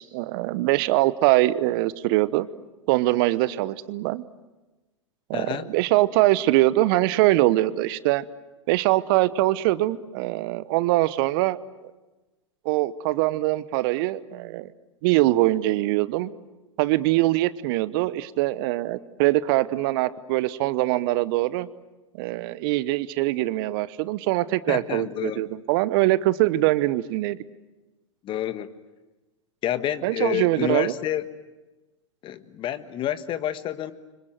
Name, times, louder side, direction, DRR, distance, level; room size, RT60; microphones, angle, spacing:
voice 1, 0.0-2.5 2.9-4.2 5.3-8.3 8.7-11.6 12.6-14.7 15.0-16.3 16.8-21.7 22.2-27.4 30.0-30.9, right 17 dB, 45° right, 17 dB, 1.0 m, -23 dB
voice 2, 5.3-5.7 24.7-25.5 28.2-28.7 29.6-31.2 32.2-33.9, left 11 dB, 30° left, 13 dB, 1.5 m, -29 dB
29.5 x 25.5 x 7.7 m, 1.1 s
figure-of-eight pair, 100°, 16 cm